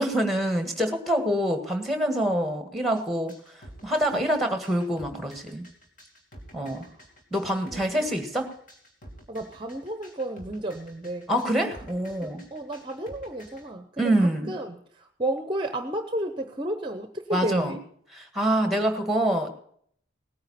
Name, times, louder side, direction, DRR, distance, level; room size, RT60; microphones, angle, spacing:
voice 1, 0.0-5.6 6.5-6.8 7.3-8.5 11.3-12.4 14.0-14.5 17.3-17.7 18.1-19.5, right 1 dB, ahead, 6 dB, 1.7 m, -26 dB
sound 1, 2.9-13.6, equal, 45° left, 2.9 m, -49 dB
voice 2, 7.7-8.1 9.3-11.4 12.2-17.8, right 1 dB, 25° right, 7 dB, 0.8 m, -32 dB
18.5 x 9.6 x 4.2 m, 0.63 s
head